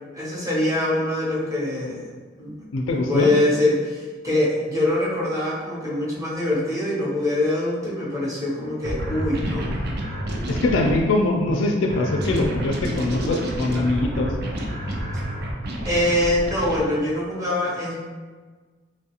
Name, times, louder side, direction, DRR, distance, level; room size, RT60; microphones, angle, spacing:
voice 1, 0.1-2.1 2.4-9.7 15.8-17.9, left 1 dB, 20° right, -7 dB, 0.8 m, -24 dB
voice 2, 2.7-3.3 10.5-14.3, left 2 dB, 90° left, 1 dB, 0.3 m, -22 dB
sound 1, 8.8-11.0 11.9-16.8, equal, 55° right, 0.4 m, -29 dB
3.0 x 2.3 x 2.8 m, 1.4 s
head